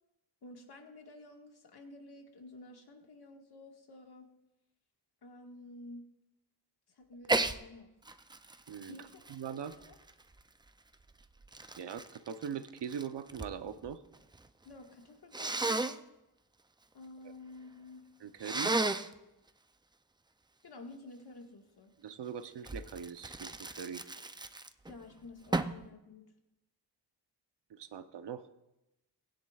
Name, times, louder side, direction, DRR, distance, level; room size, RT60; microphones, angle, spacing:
voice 1, 0.4-4.3 5.2-6.0 6.9-7.9 8.9-9.4 9.6-10.0 14.6-16.0 16.9-18.0 20.6-21.9 24.8-26.3, left 2 dB, 65° left, 2 dB, 1.7 m, -51 dB
Sneeze, 7.2-7.6 8.0-10.4 11.1-13.5 13.8-14.5 15.3-16.0 18.4-19.1 22.6-24.9 25.5-25.8, right 2 dB, 10° right, 0.3 m, -34 dB
voice 2, 8.7-9.7 11.8-14.0 18.2-18.7 22.0-24.0 27.7-28.5, right 8 dB, 75° right, 11 dB, 0.8 m, -41 dB
19.5 x 10.0 x 2.4 m, 0.93 s
wide cardioid pair, 135°, 42 cm